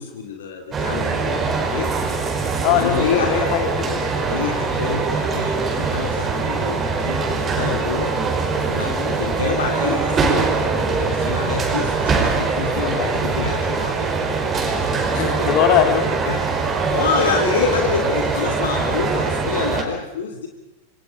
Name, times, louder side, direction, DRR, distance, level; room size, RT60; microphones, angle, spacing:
voice 1, 0.0-1.9 2.8-3.5 4.2-8.2 8.7-14.1 14.8-15.5 16.3-20.5, left 6 dB, 60° left, 3 dB, 2.6 m, -27 dB
sound 1, 0.7-19.8, right 4 dB, 20° right, 4.6 m, -22 dB
voice 2, 2.6-4.0 8.9-9.2 12.8-13.2 15.1-16.2, left 9 dB, 45° left, 6 dB, 3.2 m, -21 dB
27.5 x 25.0 x 5.1 m, 0.97 s
figure-of-eight pair, 90°, 0 cm